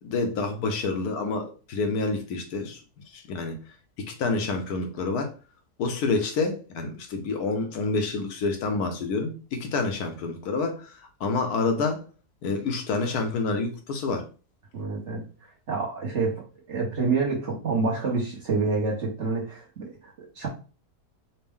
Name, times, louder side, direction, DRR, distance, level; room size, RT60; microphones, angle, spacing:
voice 1, 0.0-2.8 3.1-3.6 4.1-5.3 5.8-10.9 11.2-12.0 12.4-14.3, left 3 dB, 75° left, 4 dB, 1.2 m, -28 dB
voice 2, 14.7-15.2 15.7-20.5, right 4 dB, 50° right, -1 dB, 1.0 m, -28 dB
4.3 x 2.1 x 3.5 m, 0.35 s
omnidirectional pair, 1.7 m